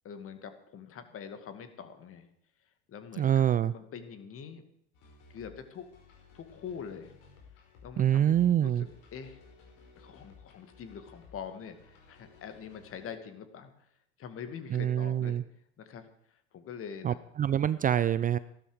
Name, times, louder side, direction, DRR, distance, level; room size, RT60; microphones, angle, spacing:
voice 1, 0.0-2.3 2.9-3.4 3.7-4.6 5.3-5.9 6.3-7.1 7.8-9.4 10.0-13.9 14.2-15.4 15.8-16.0 16.5-17.2, left 7 dB, 40° left, 9 dB, 2.3 m, -44 dB
voice 2, 3.2-3.7 8.0-8.9 14.7-15.4 17.0-18.4, right 10 dB, 25° right, 16 dB, 0.4 m, -26 dB
sound 1, 4.9-13.1, left 5 dB, 70° left, 5.2 m, -57 dB
15.0 x 12.5 x 5.0 m, 0.69 s
hypercardioid pair, 95°, 33 cm